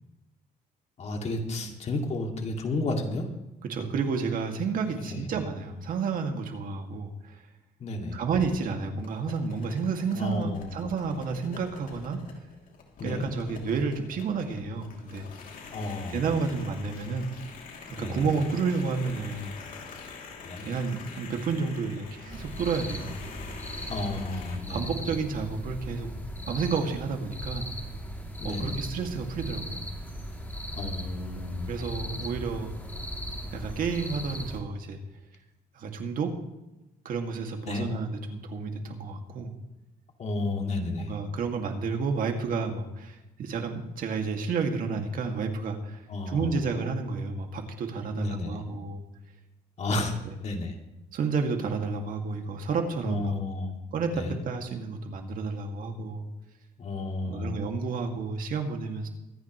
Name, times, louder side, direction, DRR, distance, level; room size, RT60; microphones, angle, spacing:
voice 1, 1.0-3.3 4.9-5.2 7.8-8.2 10.2-10.8 13.0-13.2 15.7-16.2 18.0-18.3 20.4-20.7 23.9-24.9 28.4-28.8 30.8-31.7 37.7-37.9 40.2-41.1 46.1-46.6 48.1-48.6 49.8-50.1 50.4-50.7 53.0-53.7 54.1-54.4 56.8-57.5, left 2 dB, 45° left, 3 dB, 2.4 m, -32 dB
voice 2, 3.6-7.4 8.1-12.2 13.0-15.3 16.1-17.3 17.9-19.6 20.6-23.2 24.7-26.1 26.5-27.7 28.4-29.8 31.7-32.7 33.5-35.0 35.8-36.3 37.0-39.5 41.0-49.0 50.0-50.3 51.1-53.4 53.9-56.3 57.3-59.1, right 5 dB, 60° right, 4 dB, 2.2 m, -31 dB
sound 1, 9.0-24.6, left 5 dB, 60° left, 2.8 m, -45 dB
sound 2, 22.3-34.6, equal, 10° left, 2.8 m, -38 dB
24.0 x 10.0 x 3.1 m, 1.0 s
cardioid pair, 110°, 16 cm